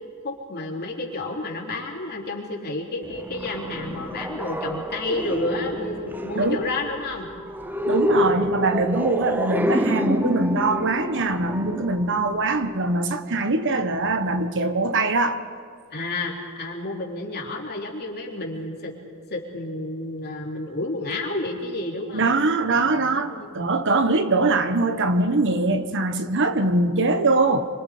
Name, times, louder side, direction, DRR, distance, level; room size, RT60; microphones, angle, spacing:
voice 1, 0.2-7.3 8.1-8.5 15.9-18.9 19.3-22.3 22.9-23.5, left 2 dB, 45° left, 0 dB, 3.4 m, -31 dB
sound 1, 3.0-12.8, equal, 10° right, 0.8 m, -28 dB
voice 2, 6.3-6.7 7.9-15.4 22.1-27.7, right 2 dB, 55° right, 9 dB, 1.2 m, -22 dB
26.5 x 25.0 x 5.1 m, 2.2 s
head